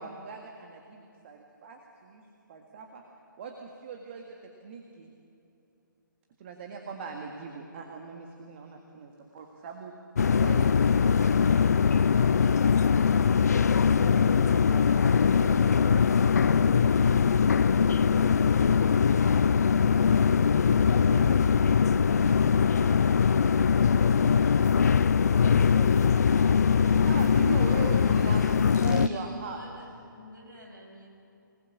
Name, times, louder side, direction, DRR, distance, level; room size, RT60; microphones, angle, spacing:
voice 1, 0.0-2.2 2.5-3.0 3.4-4.3 4.6-5.1 6.4-9.9 10.4-10.8 11.1-12.8 27.1-29.6, right 5 dB, 35° right, 2 dB, 1.9 m, -40 dB
sound 1, 10.2-29.1, left 6 dB, 50° left, 0.5 m, -22 dB
voice 2, 13.1-18.9 20.8-24.7 25.2-26.1 26.4-28.5, left 1 dB, 15° left, -1 dB, 4.4 m, -41 dB
sound 2, 24.2-29.2, right 2 dB, 10° right, 2.4 m, -56 dB
voice 3, 28.7-29.9 30.1-31.1, equal, 65° right, 0 dB, 7.2 m, -49 dB
25.5 x 19.5 x 7.4 m, 2.8 s
figure-of-eight pair, 140°, 11 cm